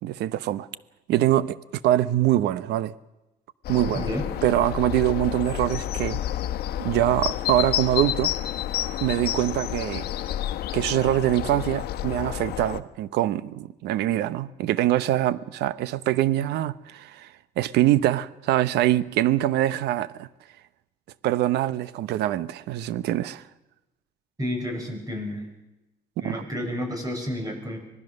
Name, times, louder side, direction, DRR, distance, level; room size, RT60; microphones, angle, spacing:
voice 1, 0.0-0.7 1.1-2.9 3.7-4.1 4.4-6.2 6.8-8.3 9.0-10.1 10.7-20.3 21.2-23.4 26.2-26.4, right 14 dB, 80° right, 0.9 m, -24 dB
sound 1, 3.6-12.8, left 12 dB, 70° left, 1.2 m, -30 dB
voice 2, 24.4-25.5 26.2-27.8, equal, 20° right, 7.2 m, -30 dB
25.5 x 19.0 x 6.6 m
cardioid pair, 110°, 17 cm